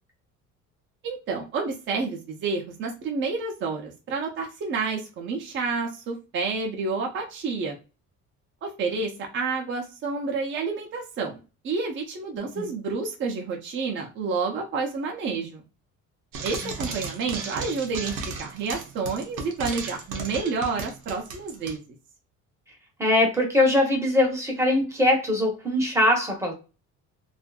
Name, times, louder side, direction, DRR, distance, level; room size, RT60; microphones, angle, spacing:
voice 1, 1.0-7.8 8.6-15.6 16.4-21.8, right 4 dB, 40° right, 1 dB, 0.6 m, -29 dB
Frying (food), 16.3-21.8, right 4 dB, 85° right, 0.8 m, -35 dB
voice 2, 23.0-26.5, left 1 dB, 10° right, 0 dB, 0.8 m, -22 dB
2.6 x 2.4 x 2.3 m, 0.31 s
cardioid pair, 155°, 30 cm